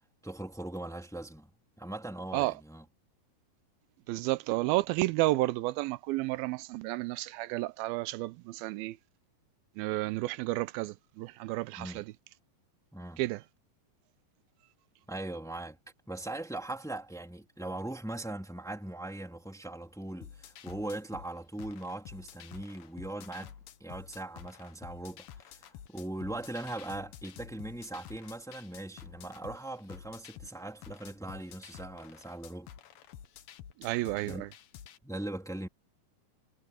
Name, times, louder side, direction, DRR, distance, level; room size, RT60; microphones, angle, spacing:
voice 1, 0.2-2.8 11.8-12.0 12.9-13.2 15.1-15.8 16.1-23.5 23.8-32.7 34.2-34.4 35.0-35.7, right 1 dB, ahead, 2.6 m, -40 dB
voice 2, 4.1-9.0 9.8-12.1 13.2-13.4 33.8-34.5, right 19 dB, 85° right, 2.4 m, -31 dB
sound 1, 20.2-35.0, left 10 dB, 70° left, 2.8 m, -50 dB
omnidirectional pair, 4.2 m